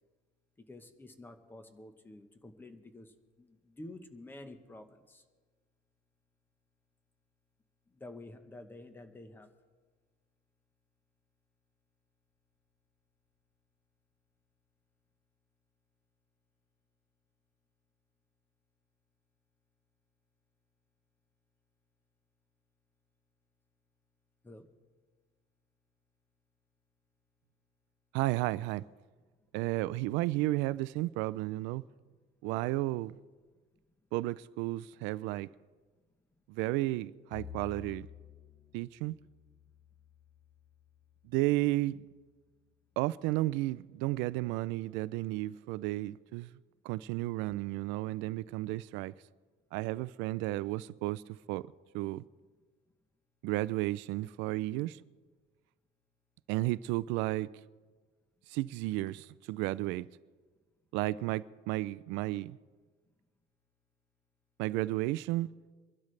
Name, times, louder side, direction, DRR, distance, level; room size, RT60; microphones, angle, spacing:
voice 1, 0.7-5.2 7.9-9.5 24.4-24.6, left 2 dB, 10° left, 1.0 m, -50 dB
voice 2, 28.1-28.8 29.5-31.8 32.4-33.2 34.1-35.5 36.5-38.1 38.7-39.1 41.2-42.0 43.0-46.5 46.8-49.1 49.7-51.2 51.5-51.6 51.9-52.2 53.4-55.0 56.5-57.5 58.5-60.1 60.9-62.6 64.6-65.5, right 18 dB, 75° right, 0.4 m, -33 dB
Bowed string instrument, 37.3-41.7, left 7 dB, 45° left, 1.6 m, -52 dB
24.0 x 12.0 x 3.3 m
cardioid pair, 170°, 19 cm